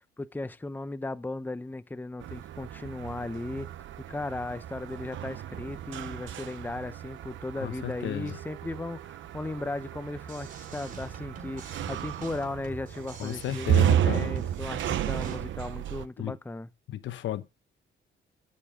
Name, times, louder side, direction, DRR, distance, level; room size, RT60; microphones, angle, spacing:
voice 1, 0.2-3.7 4.1-16.7, left 2 dB, 10° left, 0.7 m, -36 dB
sound 1, 2.2-16.1, right 11 dB, 75° right, 0.9 m, -32 dB
voice 2, 7.6-8.4 13.2-14.3 16.2-16.4 16.9-17.5, left 12 dB, 70° left, 1.0 m, -33 dB
sound 2, 10.2-15.4, right 3 dB, 45° right, 3.9 m, -46 dB
12.5 x 7.1 x 3.7 m
cardioid pair, 90°, 20 cm